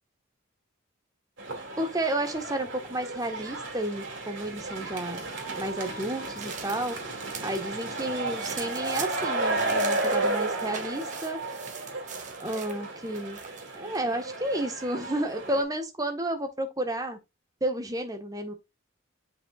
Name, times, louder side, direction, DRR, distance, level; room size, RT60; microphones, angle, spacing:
sound 1, 1.4-15.6, right 2 dB, 65° right, 2.6 m, -33 dB
voice 1, 1.8-5.3 5.6-7.0 7.4-11.4 12.4-13.4 13.7-17.2 17.6-18.5, right 1 dB, 15° right, 1.3 m, -31 dB
sound 2, 5.5-7.6 8.0-13.8, right 6 dB, 35° right, 1.3 m, -42 dB
7.4 x 5.5 x 2.4 m
head